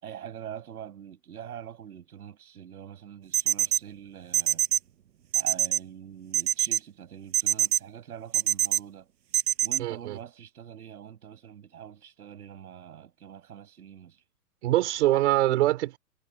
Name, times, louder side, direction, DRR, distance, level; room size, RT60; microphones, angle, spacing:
voice 1, 0.0-4.6 5.3-9.1 9.6-14.2, right 9 dB, 65° right, 7.9 m, -44 dB
sound 1, 3.3-3.8 4.3-4.8 5.3-5.8 6.3-6.8 7.3-7.8 8.3-8.8 9.3-9.8, right 11 dB, 85° right, 1.1 m, -23 dB
voice 2, 9.8-10.2 14.6-16.0, right 15 dB, 45° right, 4.2 m, -24 dB
hypercardioid pair, 155°, 48 cm